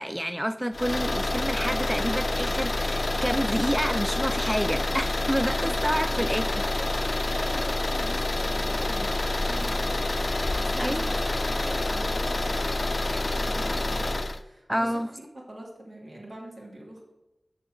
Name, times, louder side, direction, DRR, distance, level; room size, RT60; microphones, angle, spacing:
voice 1, 0.0-6.6 10.8-11.1 14.7-15.1, equal, 5° right, 10 dB, 0.3 m, -29 dB
sound 1, 0.7-14.4, left 2 dB, 50° left, 0.5 m, -27 dB
voice 2, 6.2-17.0, right 1 dB, 65° right, -2 dB, 2.8 m, -44 dB
7.2 x 6.7 x 6.3 m, 0.97 s
wide cardioid pair, 60°, 0 cm